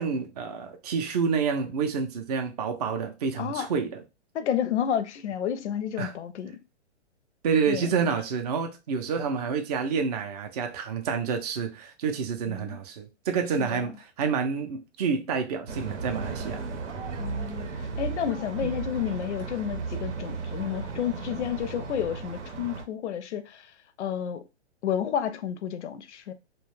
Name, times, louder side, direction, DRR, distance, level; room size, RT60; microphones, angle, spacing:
voice 1, 0.0-4.0 6.0-6.1 7.4-16.6 18.6-18.7, right 6 dB, 35° right, 0.4 m, -28 dB
voice 2, 3.4-3.7 4.3-6.5 7.7-7.9 12.5-12.8 13.6-13.9 17.2-17.7 18.0-23.7 24.0-24.4 24.8-26.3, left 9 dB, 75° left, 0.5 m, -31 dB
sound 1, 15.7-22.8, right 4 dB, 85° right, 0.8 m, -35 dB
2.3 x 2.1 x 3.1 m
hypercardioid pair, 145°, 35 cm